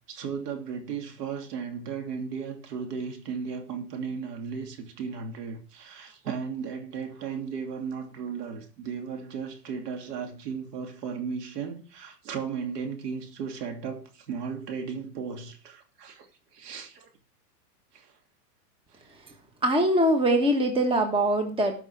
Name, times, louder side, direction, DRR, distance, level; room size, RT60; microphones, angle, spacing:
voice 1, 0.1-16.3 16.5-17.1 17.9-18.1, right 6 dB, 70° right, 2.9 m, -35 dB
voice 2, 19.6-21.8, right 1 dB, 10° right, 1.4 m, -23 dB
13.0 x 5.8 x 4.8 m
hypercardioid pair, 135°, 49 cm